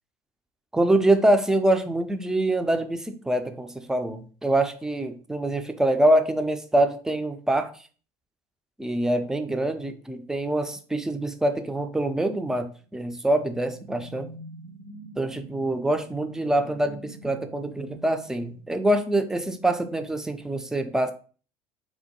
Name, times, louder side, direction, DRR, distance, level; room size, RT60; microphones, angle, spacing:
voice 1, 0.7-7.7 8.8-14.3 15.2-21.1, right 1 dB, 5° right, 7 dB, 0.4 m, -25 dB
sound 1, 12.8-19.4, right 2 dB, 75° right, 0.6 m, -46 dB
4.4 x 2.2 x 2.7 m, 0.39 s
figure-of-eight pair, 70°, 18 cm